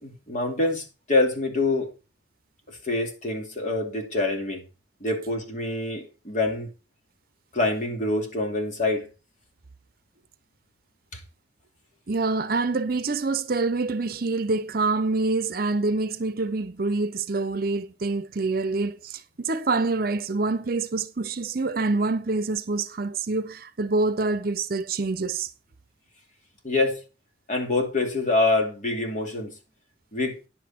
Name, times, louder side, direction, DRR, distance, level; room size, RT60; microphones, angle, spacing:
voice 1, 0.0-1.9 2.7-4.6 5.0-6.7 7.5-9.1 11.1-11.2 26.6-27.0 27.5-29.5 30.1-30.4, left 2 dB, 45° left, 2.6 m, -25 dB
voice 2, 12.1-25.5, right 3 dB, 55° right, 0.7 m, -26 dB
10.0 x 8.2 x 4.3 m
head